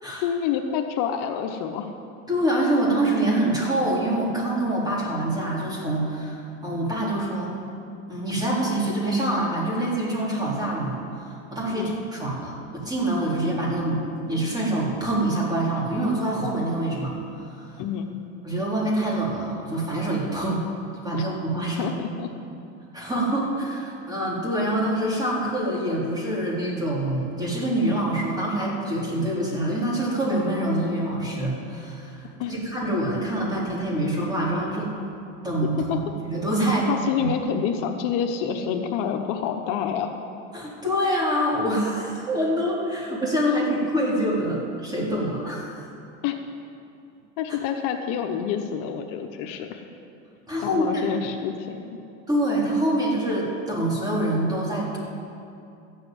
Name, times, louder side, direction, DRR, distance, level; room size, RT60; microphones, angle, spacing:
voice 1, 0.2-1.9 11.7-11.9 17.8-18.1 21.1-21.2 21.8-22.3 32.4-32.5 35.8-36.0 36.9-40.1 46.2-46.4 47.4-49.8 50.6-52.0, left 8 dB, 60° left, 5 dB, 1.0 m, -28 dB
voice 2, 2.3-7.5 8.1-17.7 18.4-20.6 21.0-21.9 22.9-35.0 35.4-36.0 36.3-36.9 37.2-37.3 40.5-45.9 50.5-51.3 52.3-55.0, right 1 dB, 10° right, -5 dB, 3.9 m, -25 dB
13.5 x 7.8 x 9.3 m, 2.6 s
supercardioid pair, 130°, 36 cm